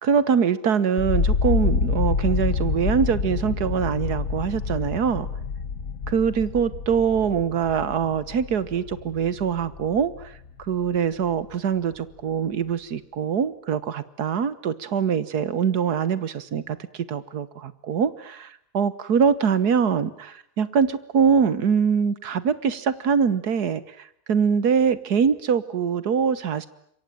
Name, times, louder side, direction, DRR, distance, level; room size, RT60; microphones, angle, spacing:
voice 1, 0.0-5.3 6.1-10.3 10.7-26.7, right 7 dB, 80° right, 16 dB, 1.8 m, -23 dB
sound 1, 1.0-11.0 11.3-12.0, left 5 dB, 60° left, 2.0 m, -27 dB
27.0 x 23.5 x 9.1 m, 0.71 s
omnidirectional pair, 1.6 m